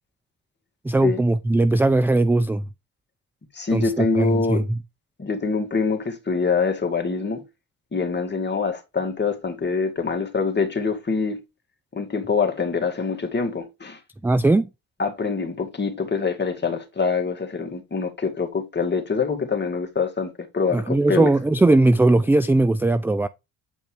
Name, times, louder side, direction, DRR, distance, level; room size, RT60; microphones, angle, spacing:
voice 1, 0.8-2.6 3.7-4.6 14.2-14.7 20.7-23.3, right 2 dB, 5° right, 0.3 m, -19 dB
voice 2, 3.5-4.6 5.2-7.4 7.9-11.4 11.9-14.0 15.0-21.3, left 4 dB, 25° left, 2.2 m, -25 dB
8.8 x 5.1 x 3.3 m
supercardioid pair, 65°, 39 cm